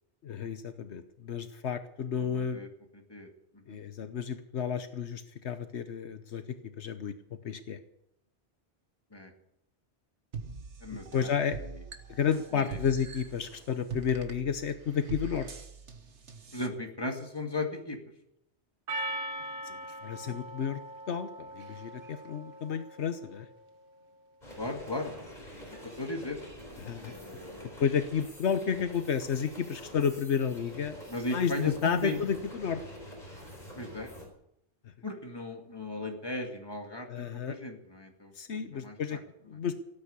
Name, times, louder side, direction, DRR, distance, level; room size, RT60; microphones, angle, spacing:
voice 1, 0.2-2.6 3.7-6.4 6.8-7.8 10.9-11.6 12.1-15.5 19.6-20.8 21.1-23.5 26.8-27.1 27.8-31.0 31.3-32.8 37.1-37.6 38.3-39.7, left 7 dB, 75° left, 10 dB, 1.2 m, -31 dB
voice 2, 2.3-2.7 3.1-3.3 3.5-3.8 9.1-9.3 10.8-11.3 12.5-12.8 16.5-18.0 24.6-25.1 26.0-26.4 27.1-27.7 31.1-32.2 33.7-34.1 35.0-39.2, left 2 dB, 20° left, 3 dB, 2.3 m, -37 dB
sound 1, 10.3-16.7, right 5 dB, 85° right, 1.7 m, -43 dB
Percussion, 18.9-23.5, right 1 dB, 55° right, 1.3 m, -40 dB
sound 2, 24.4-34.3, left 1 dB, 40° left, 4.8 m, -47 dB
17.0 x 8.9 x 8.3 m, 0.78 s
omnidirectional pair, 1.1 m